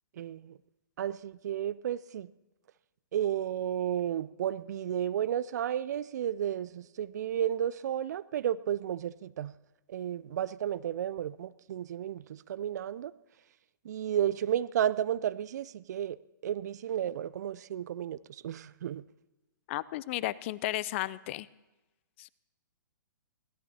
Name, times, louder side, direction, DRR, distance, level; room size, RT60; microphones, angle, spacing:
voice 1, 0.2-0.6 1.0-2.3 3.1-9.5 9.9-13.1 13.8-16.2 16.4-19.0, right 10 dB, 50° right, 18 dB, 0.5 m, -32 dB
voice 2, 19.7-21.5 22.2-22.3, left 16 dB, 35° left, 20 dB, 0.5 m, -34 dB
22.5 x 17.0 x 2.9 m, 1.1 s
figure-of-eight pair, 125°, 11 cm